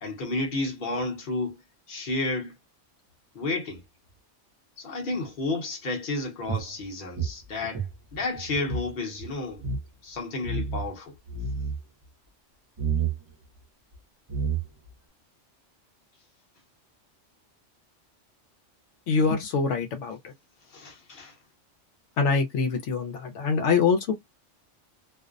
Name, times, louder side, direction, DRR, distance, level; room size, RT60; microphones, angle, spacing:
voice 1, 0.0-1.6 1.9-2.5 3.3-3.8 4.8-7.8 8.1-9.6 10.0-11.2 20.7-21.3, left 2 dB, 50° left, 0.9 m, -31 dB
sound 1, 6.5-8.9 9.2-9.3 9.6-9.8 10.4-10.9 11.3-11.8 12.8-13.2 13.9-14.0 14.3-14.9, right 5 dB, 35° right, 0.5 m, -29 dB
voice 2, 19.1-20.3 22.2-24.1, left 5 dB, 75° left, 0.9 m, -24 dB
2.5 x 2.0 x 2.4 m
omnidirectional pair, 1.2 m